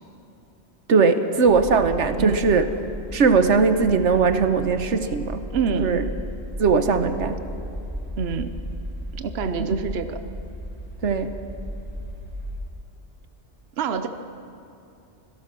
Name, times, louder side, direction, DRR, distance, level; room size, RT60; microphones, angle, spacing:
voice 1, 0.9-2.6 3.1-5.4 5.7-6.0 6.6-7.4 9.6-9.7 11.0-11.4, right 5 dB, 85° right, 9 dB, 1.3 m, -19 dB
sound 1, 1.4-12.6, equal, 35° right, 2.7 m, -35 dB
voice 2, 5.5-6.0 8.2-8.6 9.1-10.2 13.8-14.1, right 5 dB, 65° right, 9 dB, 1.1 m, -26 dB
25.5 x 17.5 x 6.1 m, 2.7 s
omnidirectional pair, 1.2 m